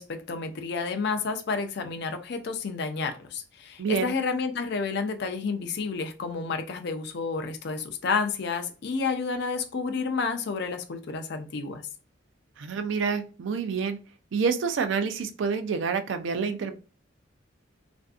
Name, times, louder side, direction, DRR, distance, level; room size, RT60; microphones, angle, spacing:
voice 1, 0.0-11.8, left 4 dB, 55° left, 0.4 m, -30 dB
voice 2, 3.8-4.1 12.6-14.0 14.3-16.7, right 5 dB, 65° right, 0.4 m, -28 dB
2.5 x 2.5 x 2.3 m
head